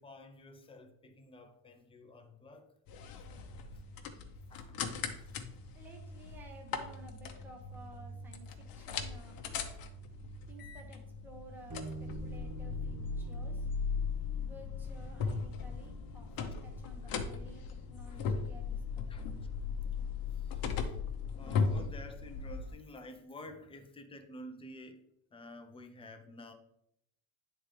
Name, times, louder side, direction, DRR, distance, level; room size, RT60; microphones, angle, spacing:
voice 1, 0.0-2.7 3.7-3.8 4.5-4.8 5.2-5.3 18.1-18.2 19.1-19.3 20.3-21.0 21.3-26.5, left 1 dB, 15° left, 5 dB, 0.3 m, -51 dB
sound 1, 2.9-22.7, left 5 dB, 50° left, 0.8 m, -38 dB
voice 2, 5.7-9.6 10.5-13.7 14.4-19.4, right 1 dB, 5° right, 1 dB, 0.7 m, -55 dB
Bass guitar, 11.7-18.0, right 3 dB, 50° right, 0.9 m, -50 dB
9.6 x 3.7 x 3.2 m, 0.76 s
cardioid pair, 165°, 44 cm